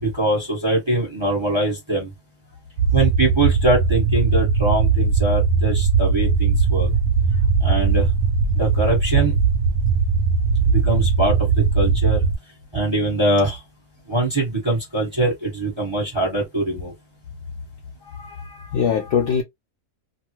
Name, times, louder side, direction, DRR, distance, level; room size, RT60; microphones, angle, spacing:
voice 1, 0.0-2.1 2.9-6.9 7.6-8.1 8.6-9.3 10.6-12.2 12.7-13.6 14.1-16.9, right 2 dB, 20° right, 1.0 m, -22 dB
sound 1, 2.8-12.4, right 5 dB, 70° right, 1.0 m, -19 dB
voice 2, 18.1-19.4, left 7 dB, 65° left, 0.7 m, -23 dB
2.8 x 2.3 x 2.9 m
omnidirectional pair, 1.7 m